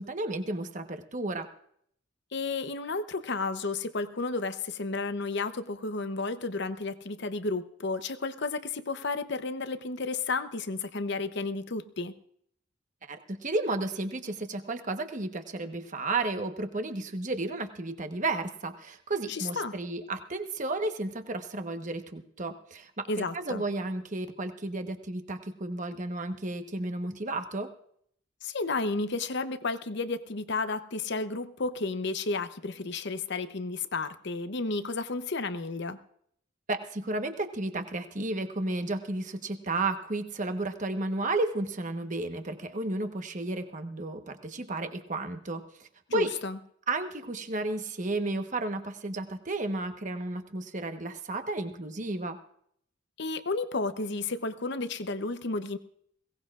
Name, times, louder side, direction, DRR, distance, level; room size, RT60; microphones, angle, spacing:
voice 1, 0.0-1.5 13.1-27.7 36.7-46.3 46.9-52.4, right 2 dB, 40° right, 7 dB, 1.2 m, -33 dB
voice 2, 2.3-12.1 19.3-19.7 23.1-23.6 28.4-36.0 46.1-46.6 53.2-55.8, left 3 dB, 60° left, 11 dB, 0.8 m, -32 dB
21.5 x 17.5 x 2.5 m, 0.67 s
head